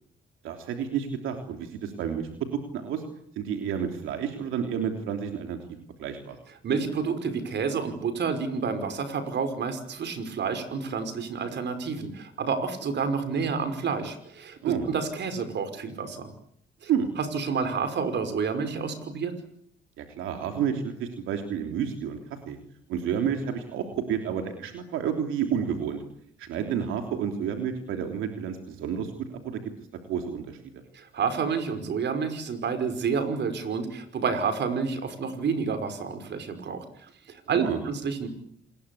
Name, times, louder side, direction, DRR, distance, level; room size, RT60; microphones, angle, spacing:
voice 1, 0.4-2.3 2.7-3.0 3.3-5.6 6.0-6.3 14.6-14.9 16.9-17.1 20.0-22.2 22.5-22.6 22.9-26.0 26.4-29.6 30.1-30.6 37.5-37.8, right 8 dB, 90° right, 4 dB, 3.3 m, -30 dB
voice 2, 6.6-16.3 16.8-16.9 17.3-19.3 30.9-38.3, right 5 dB, 60° right, 9 dB, 5.4 m, -29 dB
28.0 x 21.0 x 8.6 m, 0.70 s
cardioid pair, 90°, 20 cm